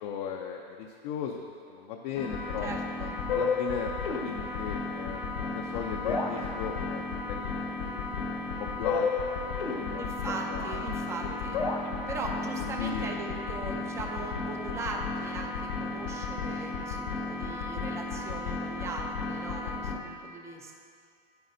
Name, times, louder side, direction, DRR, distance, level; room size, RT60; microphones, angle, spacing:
voice 1, 0.0-1.4 1.7-2.7 3.3-7.5 7.8-8.0 8.6-9.1 9.3-10.1 10.5-11.6 12.6-13.1, left 7 dB, 45° left, 2 dB, 0.6 m, -37 dB
sound 1, 2.2-20.0, left 4 dB, 70° left, 1.3 m, -33 dB
voice 2, 2.6-3.2 10.0-11.6 12.1-20.7, right 3 dB, 10° right, 1 dB, 0.5 m, -39 dB
9.3 x 9.1 x 2.6 m, 2.3 s
hypercardioid pair, 145°, 29 cm